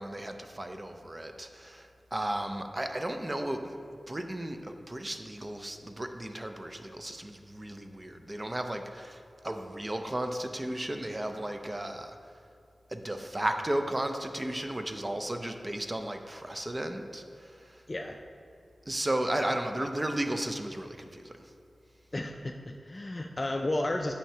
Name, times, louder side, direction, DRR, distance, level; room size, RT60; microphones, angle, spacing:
voice 1, 0.0-3.8 4.1-12.2 12.9-17.8 18.9-21.3, right 1 dB, 25° right, 6 dB, 0.5 m, -34 dB
voice 2, 22.1-24.2, left 1 dB, 35° left, 3 dB, 0.3 m, -32 dB
9.1 x 5.6 x 2.8 m, 2.5 s
wide cardioid pair, 75°, 0 cm